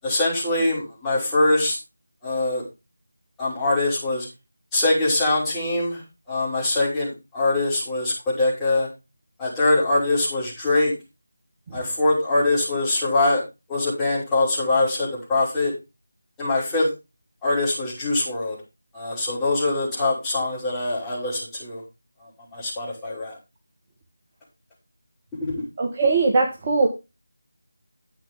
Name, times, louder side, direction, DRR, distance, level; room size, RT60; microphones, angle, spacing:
voice 1, 0.0-1.8 2.2-2.6 3.4-4.3 4.7-6.0 6.3-8.9 9.4-10.9 11.7-13.4 13.7-15.7 16.4-16.9 17.4-18.6 18.9-21.8 22.2-23.4 25.4-25.5, left 2 dB, 5° left, -10 dB, 5.8 m, -23 dB
voice 2, 25.8-26.9, right 3 dB, 25° right, 1 dB, 1.6 m, -20 dB
12.5 x 8.6 x 3.7 m, 0.27 s
figure-of-eight pair, 165°, 0 cm